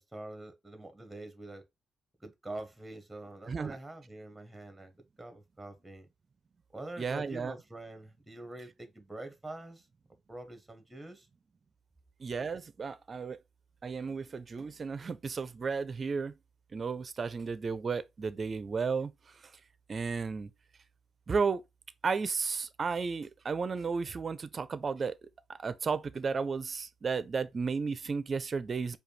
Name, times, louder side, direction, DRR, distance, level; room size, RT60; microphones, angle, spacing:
voice 1, 0.0-1.6 2.2-4.9 5.2-6.1 6.7-9.8 10.3-11.3, right 2 dB, 10° right, 1.0 m, -45 dB
voice 2, 3.5-3.8 7.0-7.5 12.2-13.4 13.8-16.4 16.7-19.1 19.9-20.5 21.3-21.6 22.0-25.2 25.5-29.0, right 5 dB, 40° right, 0.5 m, -33 dB
4.9 x 2.3 x 3.2 m
cardioid pair, 90°, 0 cm